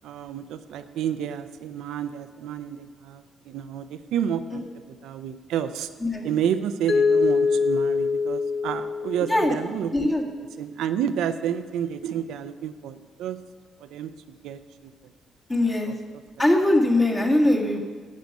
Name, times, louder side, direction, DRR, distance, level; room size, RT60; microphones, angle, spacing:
voice 1, 0.0-4.6 5.0-5.9 6.2-9.9 10.6-13.4 13.8-14.1 14.4-14.9 15.9-16.0, right 9 dB, 85° right, 9 dB, 0.5 m, -30 dB
Mallet percussion, 6.9-9.8, left 4 dB, 60° left, 0.8 m, -23 dB
voice 2, 9.9-10.2 15.5-15.9 16.4-17.8, left 1 dB, 20° left, 0 dB, 1.7 m, -21 dB
10.5 x 8.4 x 5.3 m, 1.5 s
cardioid pair, 90°, 0 cm